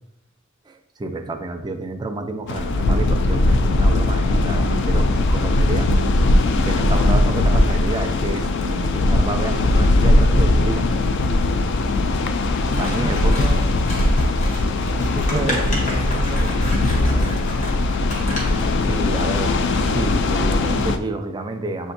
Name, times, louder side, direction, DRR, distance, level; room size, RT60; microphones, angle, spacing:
voice 1, 1.0-5.9 6.6-10.9 12.8-13.4 15.3-15.6 18.2-21.9, right 2 dB, 20° right, 6 dB, 0.3 m, -29 dB
sound 1, 2.5-21.0, left 2 dB, 60° left, 0.3 m, -19 dB
Scissors, 12.6-18.7, left 1 dB, 40° left, 0.9 m, -33 dB
voice 2, 12.6-13.6 15.0-17.7, right 1 dB, 5° left, -3 dB, 0.7 m, -32 dB
7.7 x 2.6 x 2.6 m, 0.86 s
head